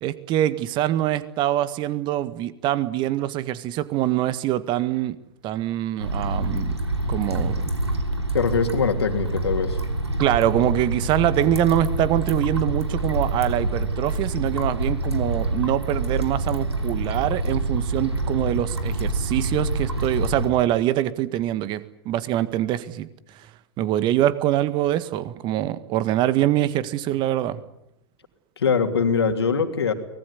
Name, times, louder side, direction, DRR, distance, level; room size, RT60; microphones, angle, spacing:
voice 1, 0.0-5.2 5.4-6.8 7.1-7.7 10.2-23.1 23.8-27.6, right 13 dB, 35° right, 15 dB, 1.8 m, -24 dB
sound 1, 6.0-20.5, right 2 dB, 90° right, 3.3 m, -26 dB
voice 2, 8.3-9.8 28.6-29.9, left 5 dB, 70° left, 6 dB, 3.0 m, -22 dB
24.0 x 20.0 x 9.7 m, 0.79 s
figure-of-eight pair, 105°, 14 cm